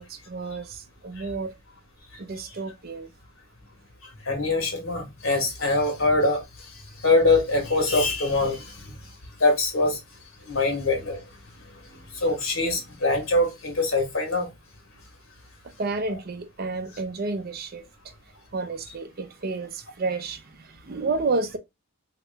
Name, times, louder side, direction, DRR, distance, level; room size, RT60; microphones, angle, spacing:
voice 1, 0.0-1.5 2.2-3.1 15.8-17.9 18.5-21.6, right 3 dB, 45° right, 0.5 m, -31 dB
voice 2, 4.2-6.4 7.0-8.9 9.4-10.0 10.5-11.3 12.1-14.5, left 2 dB, 70° left, 1.5 m, -23 dB
3.1 x 2.9 x 3.2 m
head